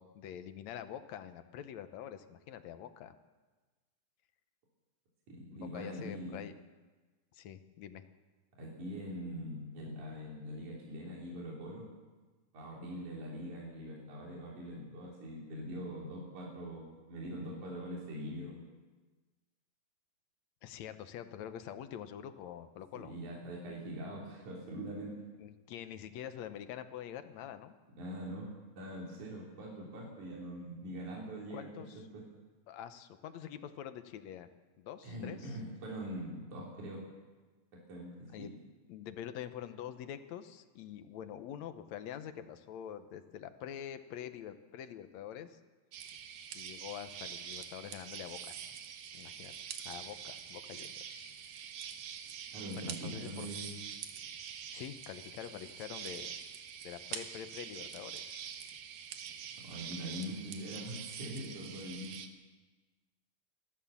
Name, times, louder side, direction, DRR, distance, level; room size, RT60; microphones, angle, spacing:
voice 1, 0.0-3.2 5.5-6.6 7.3-8.1 20.6-23.1 25.4-27.8 31.5-32.1 32.7-34.5 34.8-35.6 38.3-38.5 38.9-45.6 46.5-48.6 49.1-49.5 49.9-51.7 52.8-53.5 54.7-56.3 56.8-58.5, left 10 dB, 70° left, 10 dB, 1.9 m, -46 dB
voice 2, 5.3-6.5 8.6-11.9 12.5-18.6 22.9-25.1 28.0-28.5 28.7-31.7 32.0-32.2 35.0-37.0 37.9-38.5 52.5-53.8 59.6-62.2, equal, 60° right, -4 dB, 4.8 m, -43 dB
sound 1, 45.9-62.3, right 8 dB, 80° right, 2.9 m, -45 dB
28.0 x 12.5 x 7.2 m, 1.3 s
omnidirectional pair, 3.9 m